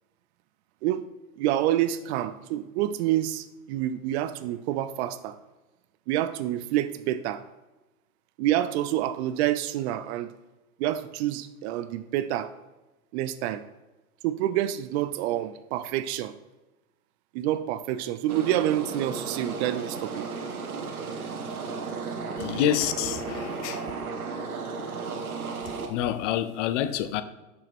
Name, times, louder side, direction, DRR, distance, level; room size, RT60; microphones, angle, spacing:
voice 1, 1.4-5.4 6.1-7.4 8.4-10.3 10.8-12.5 13.1-13.6 14.2-16.3 17.3-20.2, right 13 dB, 50° right, 13 dB, 0.5 m, -27 dB
sound 1, 18.3-25.9, right 4 dB, 90° right, 1.1 m, -34 dB
voice 2, 22.4-23.8 25.9-27.2, left 10 dB, 60° left, 12 dB, 0.7 m, -27 dB
6.3 x 5.8 x 4.4 m, 1.1 s
hypercardioid pair, 100°, 43 cm